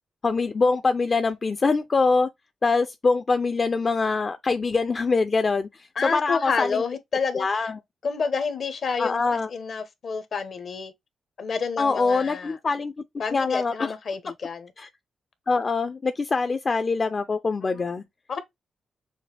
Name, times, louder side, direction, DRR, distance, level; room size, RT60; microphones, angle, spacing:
voice 1, 0.2-2.3 2.6-6.8 7.3-7.8 9.0-9.5 11.8-12.9 13.3-13.7 14.8-14.9 15.5-18.0, left 4 dB, 45° left, 0.5 m, -24 dB
voice 2, 6.0-7.7 8.0-10.9 11.4-12.6 13.2-14.7 17.6-17.8 18.3-18.4, left 5 dB, 65° left, 1.0 m, -29 dB
6.3 x 2.4 x 3.4 m
supercardioid pair, 45°, 0 cm